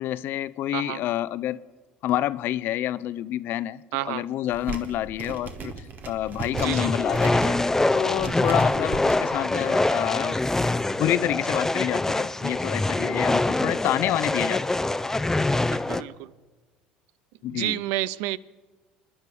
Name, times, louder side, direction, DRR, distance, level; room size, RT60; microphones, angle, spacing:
voice 1, 0.0-1.6 2.0-7.6 7.9-10.4 11.0-14.6 17.4-17.8, left 13 dB, 60° left, 0.5 m, -28 dB
voice 2, 3.9-4.3 6.5-6.9 15.7-16.3 17.4-18.4, right 16 dB, 70° right, 0.4 m, -30 dB
sound 1, 4.5-9.1, right 4 dB, 45° right, 1.7 m, -37 dB
sound 2, 6.5-16.0, left 2 dB, 10° left, 0.6 m, -24 dB
27.5 x 10.5 x 4.9 m
hypercardioid pair, 70°, 4 cm